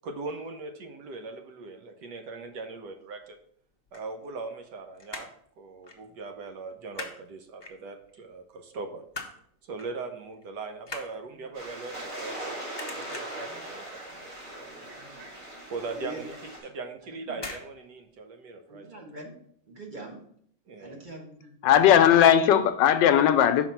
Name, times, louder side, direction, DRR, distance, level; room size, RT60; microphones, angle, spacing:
voice 1, 0.0-3.4 3.9-5.3 5.6-9.0 9.6-12.6 12.9-14.7 15.2-15.3 15.7-18.9 20.7-21.0, right 3 dB, 70° right, 6 dB, 1.4 m, -40 dB
sound 1, 3.7-4.7 5.0-5.5 5.8-6.1 6.3-7.2 7.6-8.2 8.6-9.4 9.8-10.0 10.3-12.4 12.7-13.5 13.9-14.3 14.5-14.6 15.0-15.1 15.5-15.6 16.5-16.7 17.3-17.7 18.0-18.1, left 3 dB, 25° left, 0.6 m, -41 dB
sound 2, 11.5-16.6, right 1 dB, 45° right, 3.1 m, -40 dB
voice 2, 14.6-15.3 15.9-16.3 17.1-17.4 18.7-19.3 19.7-20.2 20.8-21.5, right 2 dB, 30° right, 0 dB, 1.3 m, -44 dB
voice 3, 21.6-23.7, left 9 dB, 80° left, 10 dB, 1.2 m, -18 dB
5.8 x 4.7 x 5.6 m, 0.65 s
omnidirectional pair, 2.0 m